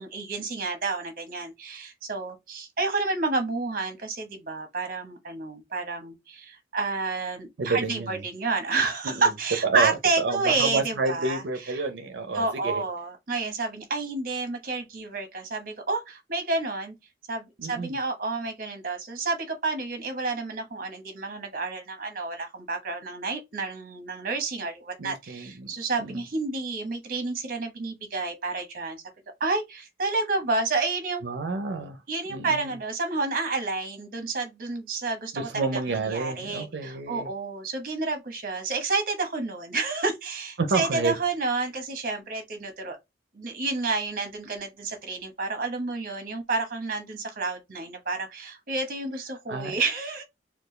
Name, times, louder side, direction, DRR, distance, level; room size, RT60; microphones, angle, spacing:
voice 1, 0.0-11.8 12.3-16.9 17.3-29.0 29.4-31.2 32.1-43.0 43.3-50.2, right 3 dB, 50° right, 1.1 m, -30 dB
voice 2, 7.6-8.2 9.0-9.2 9.7-12.8 17.6-17.9 25.0-25.7 26.0-26.2 31.2-32.0 32.3-32.7 35.3-37.3 40.6-41.2 49.5-49.7, right 3 dB, 80° right, 0.6 m, -29 dB
4.4 x 2.3 x 3.2 m
head